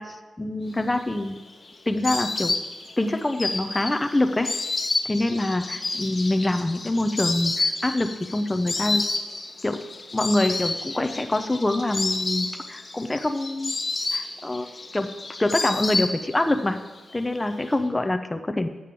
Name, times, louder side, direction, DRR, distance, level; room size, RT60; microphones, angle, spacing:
voice 1, 0.0-1.4 1.9-2.6 3.0-4.5 5.0-9.0 9.6-9.8 10.1-13.7 14.1-14.7 14.9-15.1 15.4-16.8 17.1-18.7, left 1 dB, 15° left, 7 dB, 0.5 m, -25 dB
Insect, 0.9-16.6 16.9-17.7, left 3 dB, 40° left, 1.1 m, -30 dB
7.6 x 7.2 x 6.8 m, 1.2 s
wide cardioid pair, 110°, 0 cm